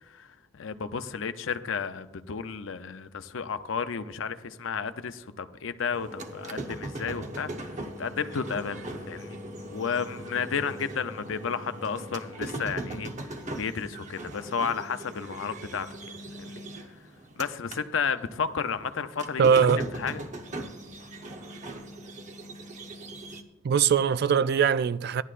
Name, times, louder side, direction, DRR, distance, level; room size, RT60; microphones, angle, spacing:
voice 1, 0.5-7.5 8.0-9.4 9.7-15.9 16.4-16.6 17.4-19.5 19.9-20.2, left 6 dB, 70° left, 0.6 m, -32 dB
sound 1, 5.9-17.8 18.2-23.4, right 1 dB, 40° right, 0.9 m, -39 dB
voice 2, 19.4-19.9 23.6-25.2, right 7 dB, 55° right, 0.3 m, -21 dB
15.5 x 11.0 x 2.5 m
head